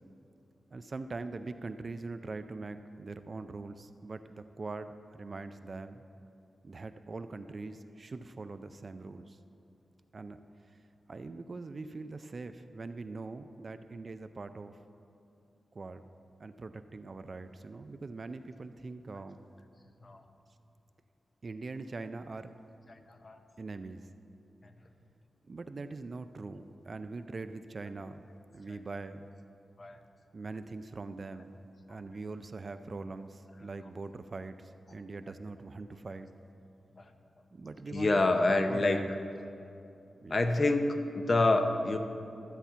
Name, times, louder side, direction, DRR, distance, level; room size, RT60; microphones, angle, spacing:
voice 1, 0.7-6.0 6.6-9.4 10.1-10.4 11.1-14.8 15.7-16.1 16.4-19.5 21.4-22.5 23.6-24.1 25.5-28.2 28.5-29.3 30.3-36.3 37.5-38.2 38.6-39.2 40.2-40.5, right 3 dB, 40° right, 10 dB, 0.4 m, -42 dB
voice 2, 37.9-39.2 40.2-42.0, left 2 dB, 40° left, 6 dB, 0.7 m, -27 dB
13.0 x 4.3 x 8.1 m, 2.6 s
wide cardioid pair, 110°, 0 cm